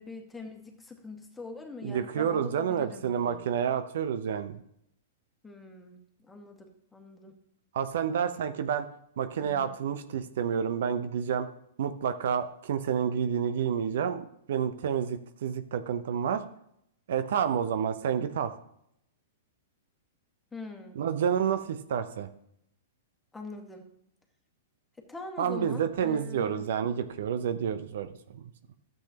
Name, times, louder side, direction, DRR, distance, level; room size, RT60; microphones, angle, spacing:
voice 1, 0.0-3.4 5.4-7.4 9.4-9.7 20.5-21.0 23.3-23.9 25.0-26.7, left 3 dB, 10° left, 2 dB, 1.7 m, -43 dB
voice 2, 1.8-4.6 7.7-8.9 9.2-11.5 11.8-16.4 17.1-18.5 21.0-22.3 25.4-28.1 28.3-28.4, right 8 dB, 65° right, 10 dB, 0.8 m, -29 dB
13.0 x 7.9 x 2.9 m, 0.73 s
hypercardioid pair, 110°, 0 cm